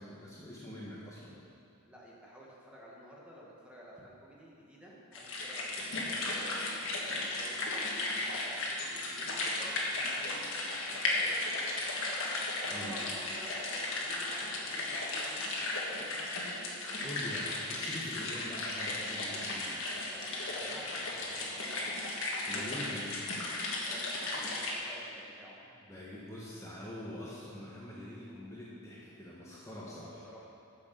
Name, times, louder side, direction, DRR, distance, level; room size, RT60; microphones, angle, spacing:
voice 1, 0.0-1.4 12.7-13.0 16.6-19.8 22.5-23.2 25.9-30.2, left 1 dB, 15° left, -7 dB, 1.3 m, -44 dB
voice 2, 1.8-6.7 7.2-11.7 12.6-16.2 20.1-21.8 23.8-24.0 24.3-25.5 30.0-30.5, equal, 5° right, -5 dB, 1.5 m, -52 dB
sound 1, 5.1-24.7, left 2 dB, 60° left, 1.7 m, -35 dB
9.7 x 6.6 x 6.8 m, 2.5 s
head